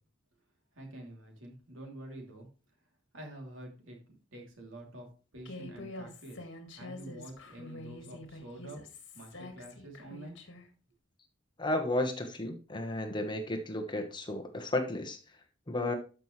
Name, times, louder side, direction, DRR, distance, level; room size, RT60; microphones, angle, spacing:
voice 1, 0.7-2.5 3.1-4.0 4.3-5.1 5.3-6.5 6.8-8.8 9.1-10.4, right 1 dB, 70° right, 2 dB, 3.0 m, -47 dB
Human voice, 5.4-10.7, left 2 dB, 60° left, 1.8 m, -46 dB
voice 2, 11.6-15.2 15.7-15.9, left 1 dB, 20° left, 4 dB, 1.1 m, -33 dB
13.0 x 5.9 x 3.2 m, 0.35 s
head